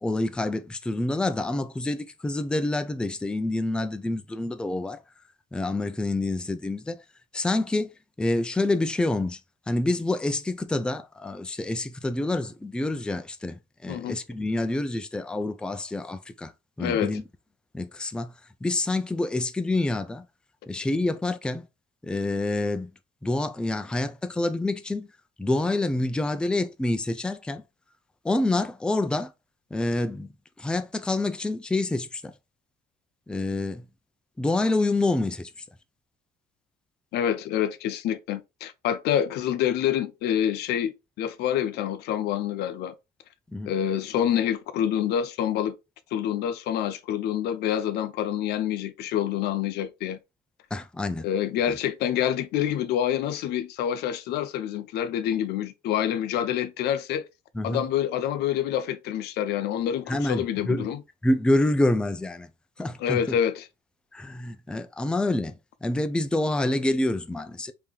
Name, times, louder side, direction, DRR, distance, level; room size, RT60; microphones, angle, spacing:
voice 1, 0.0-5.0 5.5-7.0 7.3-7.9 8.2-9.4 9.7-16.5 16.8-17.2 17.7-18.3 18.6-20.3 20.7-21.7 22.0-22.9 23.2-25.1 25.4-27.6 28.2-29.3 29.7-30.3 30.6-32.3 33.3-33.8 34.4-35.5 43.5-43.7 50.7-51.3 51.7-51.8 57.5-57.8 60.1-60.9 61.2-62.5 62.8-63.4 64.1-65.5 65.8-67.7, left 2 dB, 5° left, 0.4 m, -27 dB
voice 2, 16.8-17.1 37.1-40.9 41.2-42.9 43.7-45.7 46.1-50.2 51.2-57.3 57.6-61.0 63.0-63.6, left 10 dB, 75° left, 0.5 m, -27 dB
3.4 x 2.8 x 3.5 m
cardioid pair, 110°, 17 cm